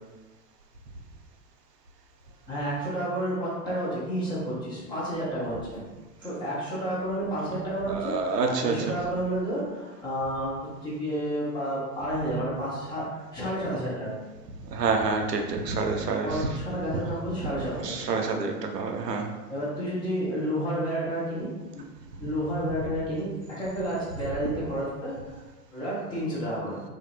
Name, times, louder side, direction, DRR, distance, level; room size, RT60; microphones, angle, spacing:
voice 1, 2.5-5.8 6.2-14.2 16.2-18.2 19.5-21.8 22.2-25.4 25.7-26.8, right 1 dB, 10° left, -8 dB, 0.4 m, -31 dB
voice 2, 7.9-9.0 14.7-16.4 17.7-19.3, right 4 dB, 85° right, 3 dB, 0.6 m, -28 dB
2.5 x 2.4 x 2.8 m, 1.2 s
figure-of-eight pair, 100°, 47 cm